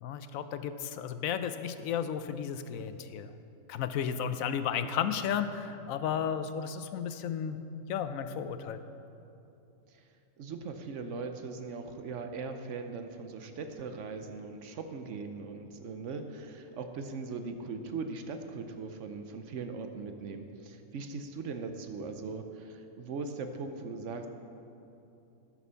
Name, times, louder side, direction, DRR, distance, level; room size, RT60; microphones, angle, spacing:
voice 1, 0.0-3.3 3.7-7.6 7.9-8.8, left 8 dB, 85° left, 10 dB, 1.0 m, -33 dB
voice 2, 10.4-24.3, right 4 dB, 65° right, 6 dB, 1.0 m, -40 dB
12.5 x 6.0 x 5.6 m, 2.8 s
omnidirectional pair, 1.4 m